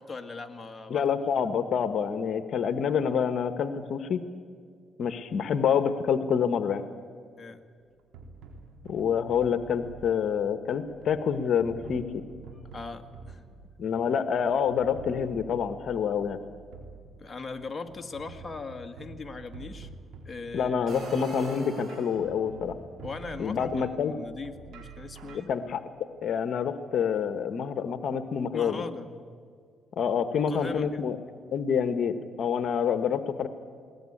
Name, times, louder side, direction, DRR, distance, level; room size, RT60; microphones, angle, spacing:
voice 1, 0.0-1.0 7.4-7.6 12.7-13.4 17.2-19.9 20.3-20.9 23.0-25.5 28.5-29.2 30.3-31.2, left 4 dB, 25° left, 5 dB, 1.8 m, -39 dB
voice 2, 0.9-4.2 5.0-6.8 8.9-12.2 13.8-16.4 20.5-22.8 23.4-24.1 25.5-25.8 26.2-28.8 30.0-31.2 31.5-33.5, left 7 dB, 65° left, 10 dB, 1.2 m, -27 dB
sound 1, 7.8-25.4, right 4 dB, 80° right, 3.8 m, -48 dB
sound 2, 20.9-22.4, right 1 dB, 40° right, 7.9 m, -36 dB
21.0 x 19.5 x 9.9 m, 2.2 s
cardioid pair, 90°, 0 cm